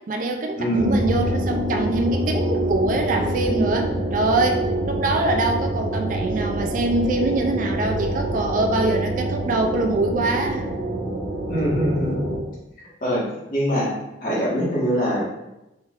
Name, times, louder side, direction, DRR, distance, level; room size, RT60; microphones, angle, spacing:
voice 1, 0.1-10.7, right 2 dB, 45° right, 3 dB, 0.4 m, -24 dB
voice 2, 0.6-1.0 11.5-12.3 13.0-13.2 13.5-13.9 14.2-15.2, equal, 50° left, -7 dB, 1.4 m, -22 dB
sound 1, 0.7-12.4, right 1 dB, 75° right, 0.8 m, -26 dB
3.9 x 3.3 x 2.5 m, 0.95 s
head